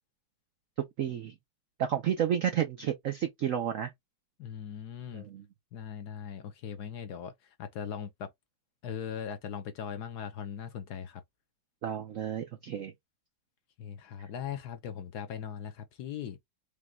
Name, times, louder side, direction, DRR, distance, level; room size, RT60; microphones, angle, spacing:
voice 1, 1.0-1.3 1.8-3.9 5.1-5.4 11.8-12.9, right 9 dB, 85° right, 0.7 m, -31 dB
voice 2, 4.4-5.3 5.7-7.3 7.6-8.3 8.8-11.2 13.8-16.4, left 8 dB, 65° left, 1.1 m, -39 dB
5.1 x 2.3 x 3.0 m
omnidirectional pair, 2.2 m